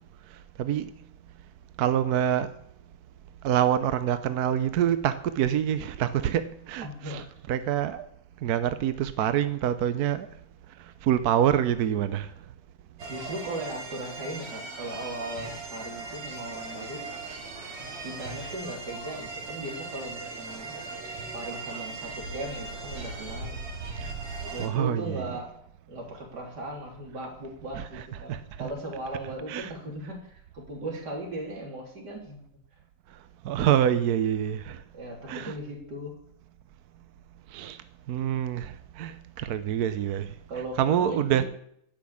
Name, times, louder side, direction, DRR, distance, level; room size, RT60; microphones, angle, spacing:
voice 1, 1.8-2.5 3.4-8.1 8.4-10.3 11.0-12.3 24.6-25.2 27.8-28.0 28.3-28.7 29.5-29.7 33.4-34.8 35.3-35.5 37.5-37.8 38.1-40.3 40.8-41.4, right 10 dB, 65° right, 0.9 m, -26 dB
voice 2, 6.8-7.3 13.1-17.0 18.0-20.8 21.2-23.5 24.5-25.5 25.9-32.6 34.9-36.1 40.5-41.4, right 1 dB, 50° right, 3.9 m, -38 dB
sound 1, 13.0-24.7, right 3 dB, 85° right, 3.5 m, -38 dB
16.0 x 6.2 x 8.5 m
omnidirectional pair, 2.4 m